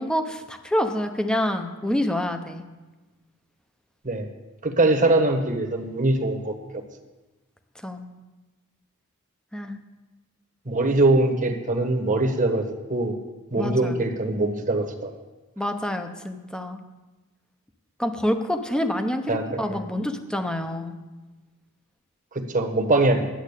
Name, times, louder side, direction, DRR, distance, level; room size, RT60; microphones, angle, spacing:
voice 1, 0.0-2.6 7.8-8.0 9.5-9.8 13.6-13.9 15.6-16.8 18.0-21.0, left 1 dB, 5° left, 6 dB, 0.9 m, -27 dB
voice 2, 4.6-6.5 10.6-12.6 12.9-13.1 13.5-15.2 19.3-19.8 22.3-23.3, right 2 dB, 35° right, 4 dB, 1.3 m, -22 dB
10.5 x 7.8 x 8.3 m, 1.2 s
head